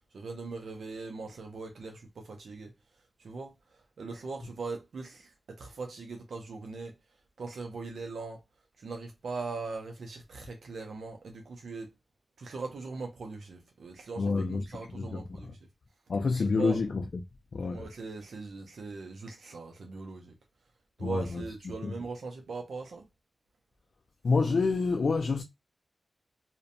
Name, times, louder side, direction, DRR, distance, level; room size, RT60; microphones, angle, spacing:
voice 1, 0.1-2.7 3.2-7.0 7.4-8.4 8.8-11.9 12.4-15.6 16.2-16.8 17.7-20.3 21.0-23.0, right 4 dB, 85° right, 0.4 m, -40 dB
voice 2, 14.2-14.7 14.9-15.2 16.1-17.0 17.5-17.8 21.0-21.4 21.8-21.9 24.2-25.4, left 4 dB, 70° left, 0.3 m, -27 dB
2.6 x 2.1 x 2.5 m
cardioid pair, 70°, 0 cm